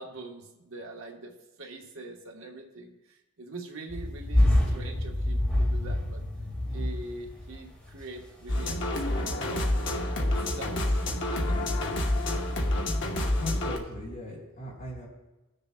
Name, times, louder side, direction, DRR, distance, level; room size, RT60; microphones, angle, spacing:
voice 1, 0.0-1.3 1.6-6.2 6.7-9.3 9.8-11.0 11.5-11.7, right 2 dB, 70° right, 2 dB, 1.2 m, -43 dB
sound 1, 3.9-13.6, left 1 dB, 5° left, 1.8 m, -30 dB
sound 2, 8.5-13.8, left 1 dB, 55° left, 1.1 m, -28 dB
voice 2, 13.4-15.1, left 1 dB, 40° left, -4 dB, 3.6 m, -39 dB
19.5 x 6.7 x 2.2 m, 1.0 s
head